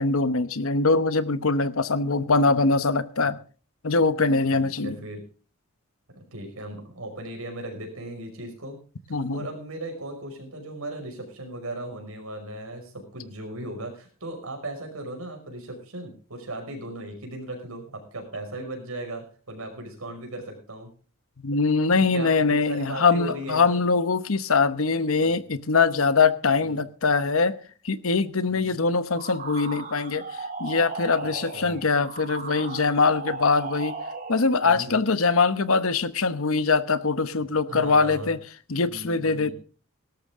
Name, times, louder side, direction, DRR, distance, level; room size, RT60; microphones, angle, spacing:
voice 1, 0.0-3.4 3.8-5.0 9.1-9.4 21.4-27.5 27.8-30.2 30.6-33.9 34.3-38.4 38.7-39.5, left 4 dB, 75° left, 1.0 m, -22 dB
voice 2, 4.2-5.2 6.1-8.8 9.1-20.9 22.0-23.8 25.2-25.4 26.6-26.8 28.5-28.8 31.5-31.8 34.6-35.0 37.6-38.4 38.8-39.5, right 1 dB, 85° right, 5.6 m, -37 dB
sound 1, 29.1-34.5, right 3 dB, 40° right, 4.3 m, -36 dB
17.5 x 13.0 x 3.6 m
head